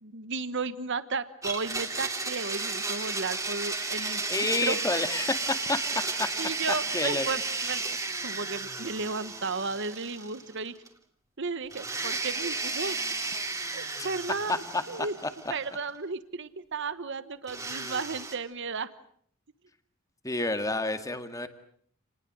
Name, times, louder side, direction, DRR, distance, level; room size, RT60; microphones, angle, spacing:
voice 1, 0.0-5.0 6.4-10.7 11.4-13.0 13.7-15.1 15.5-18.9, right 4 dB, 60° right, 13 dB, 1.2 m, -34 dB
Domestic sounds home sounds, 1.4-10.6 10.9-11.0 11.7-15.6 17.5-18.4, right 3 dB, 15° right, 2.9 m, -33 dB
voice 2, 4.3-5.8 6.2-6.3 6.9-7.3 14.0-14.1 14.5-14.6 20.2-21.5, left 2 dB, 15° left, 8 dB, 2.1 m, -29 dB
29.5 x 20.0 x 7.8 m, 0.62 s
head